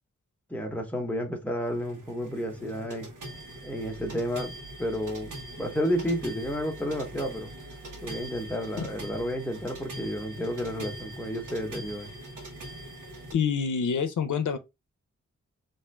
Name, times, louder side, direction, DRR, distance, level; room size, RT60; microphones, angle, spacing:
voice 1, 0.5-3.1 3.6-7.5 8.0-12.1, equal, 5° left, 0.9 m, -31 dB
sound 1, 1.6-13.3, right 1 dB, 85° right, 1.1 m, -42 dB
voice 2, 13.3-14.6, left 6 dB, 75° left, 0.6 m, -27 dB
3.6 x 2.6 x 3.2 m
wide cardioid pair, 105°, 30 cm